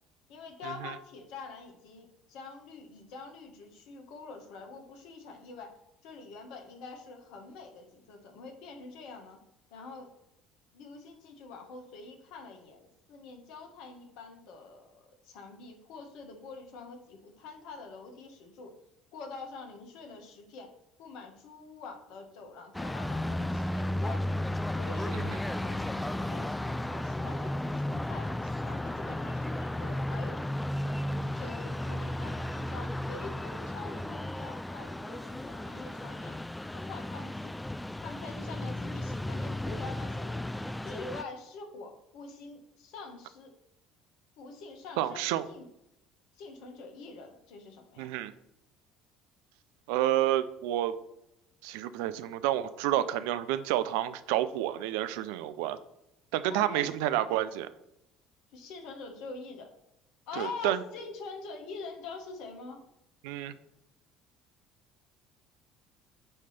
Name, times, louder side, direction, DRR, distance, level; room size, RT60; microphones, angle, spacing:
voice 1, 0.3-5.7 6.0-9.4 9.7-10.1 10.7-18.7 19.1-20.7 21.0-24.4 24.7-30.4 31.3-36.4 36.7-37.6 38.0-40.4 40.8-43.5 44.4-45.6 46.4-48.1 56.5-56.9 58.5-59.7 60.3-62.8, left 4 dB, 70° left, 3 dB, 1.6 m, -45 dB
sound 1, 22.7-41.2, left 1 dB, 10° left, 0.3 m, -34 dB
voice 2, 45.0-45.5 48.0-48.3 49.9-50.9 51.6-55.8 56.3-57.7 60.4-60.8 63.2-63.5, right 13 dB, 75° right, 13 dB, 0.5 m, -29 dB
8.8 x 3.3 x 5.8 m, 0.84 s
hypercardioid pair, 65°, 0 cm